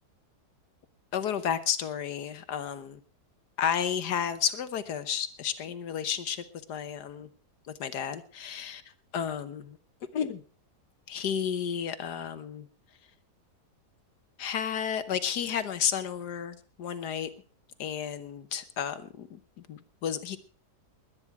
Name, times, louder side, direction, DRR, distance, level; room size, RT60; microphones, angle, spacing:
voice 1, 1.1-3.0 3.6-7.3 7.7-8.8 9.1-9.8 10.1-10.4 11.1-12.7 14.4-17.3 17.8-20.4, left 8 dB, 80° left, 12 dB, 1.6 m, -32 dB
21.0 x 9.8 x 4.7 m, 0.41 s
omnidirectional pair, 1.8 m